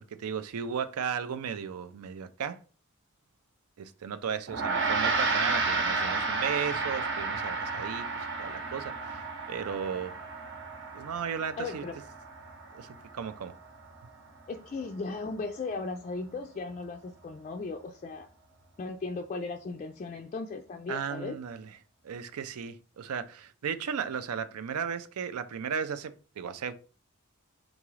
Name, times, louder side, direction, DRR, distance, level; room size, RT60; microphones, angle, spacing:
voice 1, 0.1-2.6 3.8-10.2 10.9-11.8 12.7-13.5 20.9-21.7 22.0-26.7, right 7 dB, 90° right, 0.4 m, -35 dB
Gong, 4.5-14.1, right 3 dB, 60° right, 0.9 m, -32 dB
voice 2, 11.6-11.9 14.5-18.3 18.8-21.4, left 3 dB, 35° left, 0.3 m, -37 dB
3.8 x 3.6 x 3.1 m
head